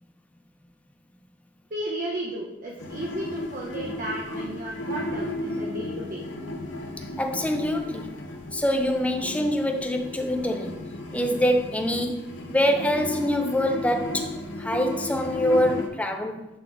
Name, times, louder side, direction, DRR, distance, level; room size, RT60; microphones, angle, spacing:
voice 1, 1.7-6.3, right 1 dB, 45° right, -3 dB, 0.7 m, -34 dB
sound 1, 2.8-15.9, left 1 dB, 70° left, 0.8 m, -34 dB
voice 2, 7.0-8.2 8.5-10.8 11.1-16.5, equal, 5° left, 5 dB, 0.4 m, -25 dB
7.7 x 3.6 x 3.5 m, 0.95 s
head